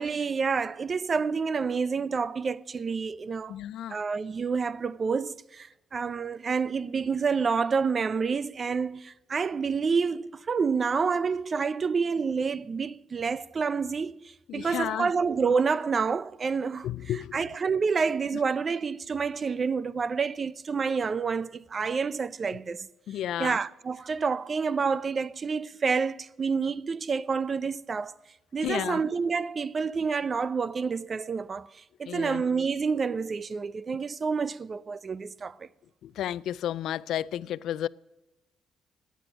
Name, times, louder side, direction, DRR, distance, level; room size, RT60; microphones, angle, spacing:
voice 1, 0.0-3.6 3.9-22.9 23.4-28.1 28.5-31.7 32.0-35.7, right 5 dB, 40° right, 0.6 m, -28 dB
voice 2, 3.5-4.0 14.5-15.1 16.8-17.3 23.1-23.6 28.6-29.0 32.1-32.4 36.0-37.9, left 11 dB, 80° left, 0.4 m, -32 dB
14.5 x 9.3 x 9.1 m
cardioid pair, 90°, 0 cm